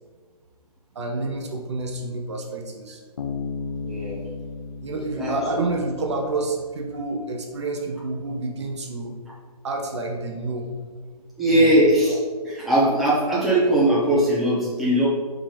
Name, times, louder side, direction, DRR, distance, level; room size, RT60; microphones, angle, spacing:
voice 1, 0.9-3.0 4.8-9.2 9.6-10.7 11.5-11.7, right 2 dB, 45° right, 2 dB, 0.8 m, -29 dB
Bass guitar, 3.2-6.7, left 4 dB, 60° left, 0.9 m, -34 dB
voice 2, 3.8-4.2 5.2-5.3 11.4-12.2 12.4-15.1, right 1 dB, ahead, -10 dB, 0.9 m, -19 dB
5.4 x 3.5 x 5.0 m, 1.5 s
hypercardioid pair, 160°, 20 cm